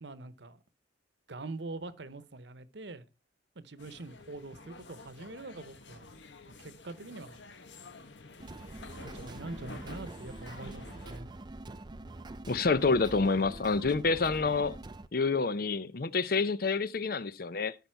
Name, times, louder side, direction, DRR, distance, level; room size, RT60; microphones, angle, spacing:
voice 1, 0.0-0.6 1.3-3.0 3.6-6.1 6.6-7.4 9.0-11.3, right 2 dB, 65° right, 0.9 m, -44 dB
sound 1, 3.8-11.2, left 3 dB, 70° left, 1.2 m, -50 dB
sound 2, 8.4-15.1, right 2 dB, 25° right, 0.5 m, -45 dB
voice 2, 12.5-14.8 15.1-17.8, left 4 dB, 50° left, 0.6 m, -28 dB
13.0 x 5.5 x 4.6 m
head